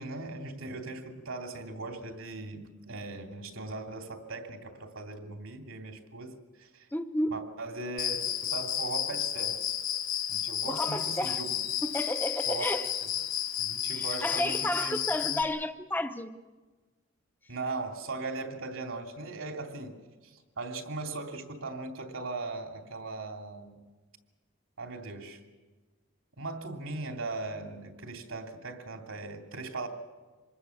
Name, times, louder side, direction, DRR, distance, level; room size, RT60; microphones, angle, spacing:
voice 1, 0.0-6.9 7.3-9.6 10.3-11.6 12.5-12.8 13.6-15.0 15.3-15.4 17.5-20.0 20.2-23.8 24.8-25.4 26.4-29.9, right 3 dB, 90° right, 4 dB, 3.0 m, -39 dB
voice 2, 6.9-7.4 10.7-11.4 11.8-12.9 13.9-16.4, left 1 dB, 10° left, 9 dB, 0.9 m, -32 dB
Cricket, 8.0-15.4, left 10 dB, 80° left, 2.5 m, -32 dB
26.0 x 20.5 x 7.3 m, 1.3 s
head